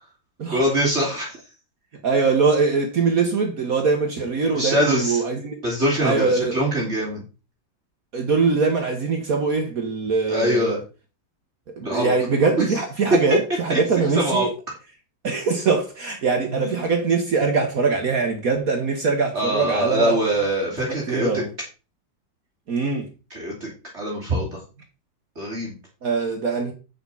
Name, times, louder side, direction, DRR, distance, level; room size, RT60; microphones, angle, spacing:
voice 1, 0.5-1.4 4.5-5.2 5.6-7.2 10.3-10.8 11.8-12.1 13.7-13.8 14.1-14.5 16.6-16.9 19.3-21.3 23.3-23.7 23.9-24.6 25.4-25.8, equal, 35° right, 2.6 m, -23 dB
voice 2, 2.0-5.6 6.0-6.6 8.1-10.8 11.8-14.5 15.2-20.6 20.9-21.5 22.7-23.1 26.0-26.7, right 4 dB, 50° right, 1.6 m, -22 dB
8.4 x 6.7 x 3.9 m
omnidirectional pair, 2.0 m